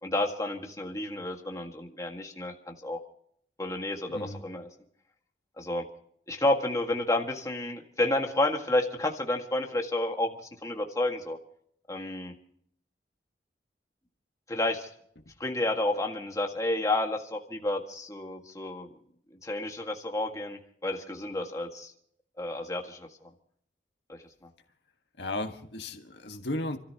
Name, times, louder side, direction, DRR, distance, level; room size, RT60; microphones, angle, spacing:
voice 1, 0.0-3.0 3.6-4.7 5.6-5.9 6.3-10.4 10.6-11.4 11.9-12.3 14.5-14.9 15.4-18.9 19.4-21.9 22.4-23.3 24.1-24.2, left 2 dB, 20° left, 2 dB, 1.8 m, -30 dB
voice 2, 25.2-26.8, left 1 dB, 70° left, 5 dB, 1.6 m, -35 dB
30.0 x 13.5 x 2.9 m, 0.65 s
head